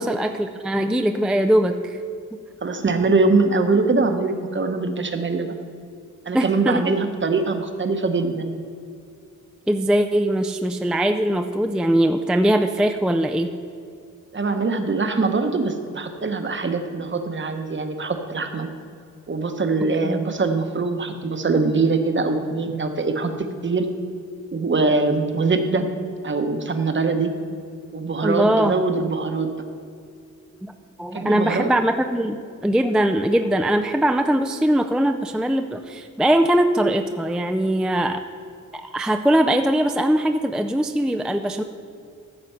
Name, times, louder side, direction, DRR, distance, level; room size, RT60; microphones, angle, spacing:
voice 1, 0.0-2.0 6.3-6.9 9.7-13.5 20.0-20.2 28.2-28.8 30.6-30.7 31.0-38.2 38.7-41.6, right 1 dB, 5° right, 6 dB, 0.4 m, -21 dB
voice 2, 2.6-5.5 6.3-8.6 14.3-18.7 19.3-23.3 23.6-23.9 24.5-25.9 26.2-27.3 27.9-29.5 31.1-31.7, right 3 dB, 40° right, 7 dB, 0.9 m, -22 dB
14.5 x 6.6 x 5.6 m, 2.3 s
wide cardioid pair, 130°, 31 cm